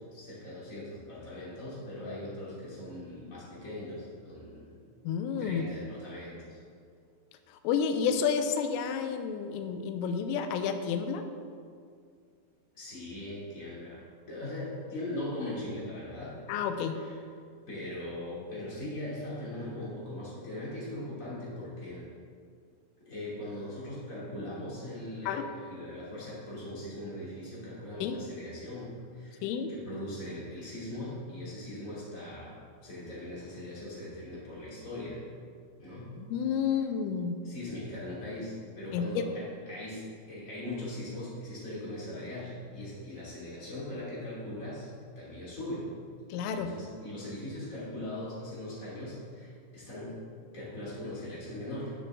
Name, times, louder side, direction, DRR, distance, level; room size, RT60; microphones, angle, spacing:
voice 1, 0.1-4.7 5.4-6.6 12.7-16.4 17.0-17.1 17.7-22.1 23.0-29.4 29.7-32.5 32.8-35.2 35.8-36.1 37.4-44.9 45.1-45.9 46.5-50.2 50.5-51.9, left 1 dB, 40° left, -8 dB, 1.1 m, -40 dB
voice 2, 5.0-5.7 7.5-11.2 16.5-17.0 25.3-25.5 28.0-28.2 29.4-29.7 36.2-37.4 38.9-39.1 46.3-46.7, left 7 dB, 85° left, 7 dB, 3.1 m, -30 dB
11.5 x 7.6 x 3.6 m, 2.2 s
omnidirectional pair, 6.0 m